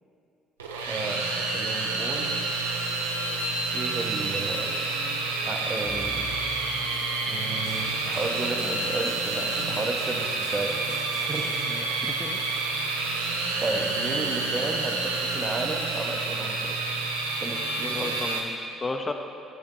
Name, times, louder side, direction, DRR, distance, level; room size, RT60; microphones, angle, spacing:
sound 1, 0.6-18.4, right 3 dB, 85° right, 0.4 m, -29 dB
voice 1, 0.9-2.3 3.7-4.7 5.5-6.3 7.3-10.7 11.3-11.5 13.6-16.8 17.4-18.3, right 3 dB, 30° right, 3 dB, 0.6 m, -33 dB
sound 2, 2.1-11.7, left 1 dB, 80° left, 1.1 m, -45 dB
voice 2, 11.7-12.4 17.8-19.1, left 3 dB, 30° left, 5 dB, 0.4 m, -34 dB
6.2 x 5.2 x 3.7 m, 2.7 s
figure-of-eight pair, 50°, 0 cm